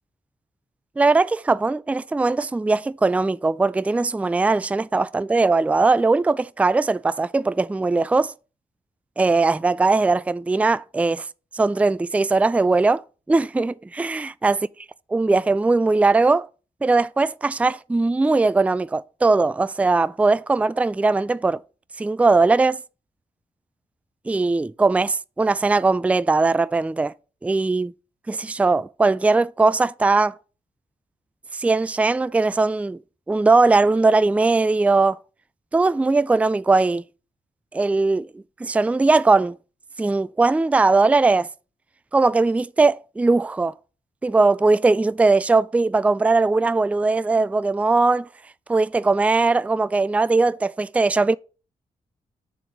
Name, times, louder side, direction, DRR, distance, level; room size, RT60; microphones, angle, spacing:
voice 1, 1.0-8.3 9.2-11.3 11.5-13.0 13.3-14.6 15.1-16.5 16.8-21.6 22.0-22.8 24.3-27.1 27.4-27.9 28.3-30.3 31.5-33.0 33.3-35.2 35.7-37.0 37.7-38.3 38.6-39.6 40.0-41.5 42.1-43.7 44.2-48.3 48.7-51.4, right 3 dB, 10° right, 0.3 m, -19 dB
7.0 x 3.8 x 5.9 m
supercardioid pair, 45°, 15 cm